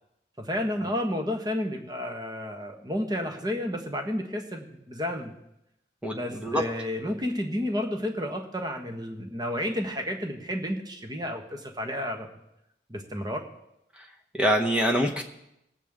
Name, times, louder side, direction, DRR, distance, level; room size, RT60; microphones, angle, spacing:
voice 1, 0.4-5.3 6.1-12.3 12.9-13.4, left 1 dB, 20° right, 3 dB, 1.3 m, -31 dB
voice 2, 6.0-6.6 14.4-15.2, equal, 5° right, 0 dB, 0.9 m, -24 dB
20.5 x 8.4 x 3.6 m, 0.83 s
head